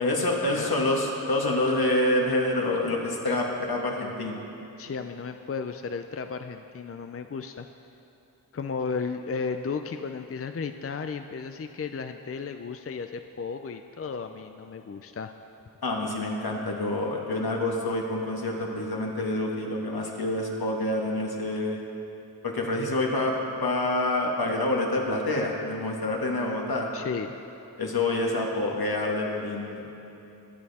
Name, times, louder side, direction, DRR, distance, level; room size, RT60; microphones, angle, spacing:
voice 1, 0.0-4.4 15.8-21.8 22.4-23.4 23.6-26.9 27.8-29.9, left 2 dB, 75° left, -1 dB, 1.8 m, -27 dB
voice 2, 4.8-7.7 8.5-15.3 26.9-27.4, left 5 dB, 40° left, 7 dB, 0.5 m, -34 dB
21.5 x 8.6 x 4.2 m, 2.9 s
wide cardioid pair, 75°, 37 cm